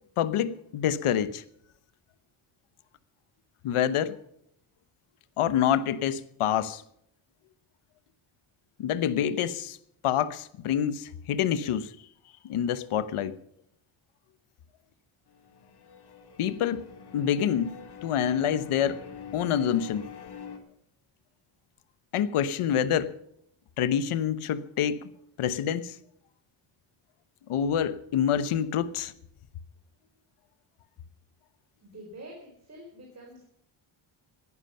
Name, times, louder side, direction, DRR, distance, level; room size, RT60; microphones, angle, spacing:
voice 1, 0.2-1.4 3.6-4.2 5.4-6.8 8.8-9.8 10.0-11.9 12.4-13.4 16.4-16.8 17.1-19.0 19.3-20.0 22.1-23.2 23.8-25.1 25.4-26.0 27.5-29.1, left 9 dB, 85° left, 1.1 m, -27 dB
sound 1, 15.3-20.6, left 6 dB, 50° left, 2.5 m, -45 dB
voice 2, 31.8-33.5, right 1 dB, 30° right, 4.3 m, -46 dB
18.0 x 11.0 x 5.6 m
cardioid pair, 120°, 49 cm